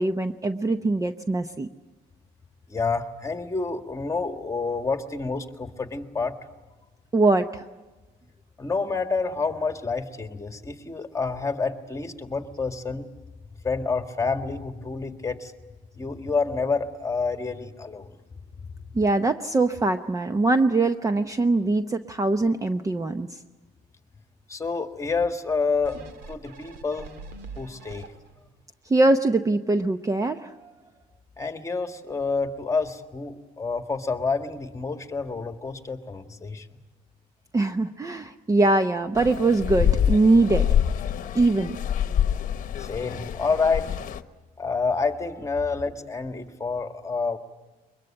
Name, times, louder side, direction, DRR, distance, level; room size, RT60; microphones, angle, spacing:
voice 1, 0.0-1.7 7.1-7.6 18.9-23.4 28.9-30.7 37.5-40.7 41.3-41.8, right 2 dB, 20° right, 9 dB, 0.8 m, -22 dB
voice 2, 2.7-6.4 8.6-13.1 13.6-15.5 16.0-18.1 24.5-26.0 26.3-27.1 27.6-28.1 31.4-36.7 42.8-43.9 44.6-47.4, left 4 dB, 20° left, 6 dB, 1.8 m, -28 dB
sound 1, 25.8-28.5 29.0-29.1, right 3 dB, 80° right, 2.5 m, -43 dB
sound 2, 39.2-44.2, left 9 dB, 50° left, 1.1 m, -26 dB
23.0 x 21.5 x 8.8 m, 1.2 s
cardioid pair, 110°, 17 cm